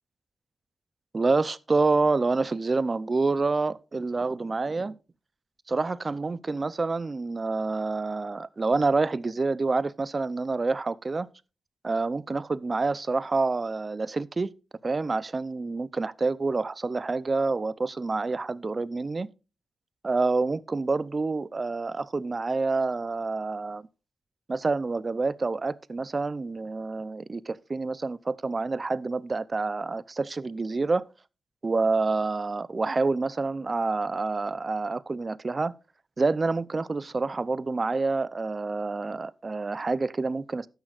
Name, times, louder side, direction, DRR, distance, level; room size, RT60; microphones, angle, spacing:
voice 1, 1.1-5.0 5.7-11.3 11.8-14.5 14.8-19.3 20.0-23.9 24.5-31.0 31.6-35.7 36.2-40.7, right 3 dB, 30° right, 0.5 m, -27 dB
12.0 x 10.5 x 2.5 m
cardioid pair, 100°, 0 cm